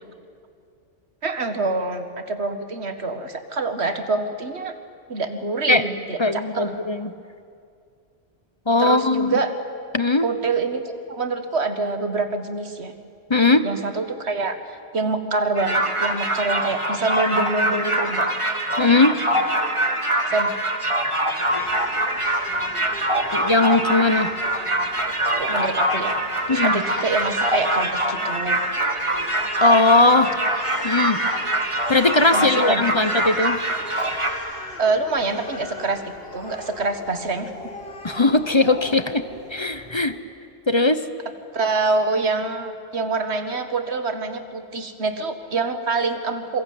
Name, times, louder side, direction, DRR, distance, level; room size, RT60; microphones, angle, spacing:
voice 1, 1.2-4.7 5.1-6.8 8.8-9.5 10.2-12.9 13.6-14.6 14.9-18.3 20.3-20.5 25.4-26.1 26.5-28.6 32.3-32.8 34.8-36.0 36.3-37.5 41.5-46.6, right 3 dB, 75° right, 8 dB, 2.0 m, -25 dB
voice 2, 6.2-7.1 8.7-9.3 9.9-10.3 13.3-13.7 18.8-19.1 23.3-24.3 26.5-26.8 29.6-30.3 30.8-31.2 31.9-33.6 38.0-39.2 39.5-40.1 40.7-41.0, left 2 dB, 25° left, 11 dB, 0.9 m, -19 dB
sound 1, 15.6-34.3, right 1 dB, 30° right, 2.1 m, -24 dB
Crying sobbing, 21.4-40.2, left 2 dB, 65° left, 2.4 m, -39 dB
27.5 x 22.5 x 9.5 m, 2.3 s
omnidirectional pair, 1.1 m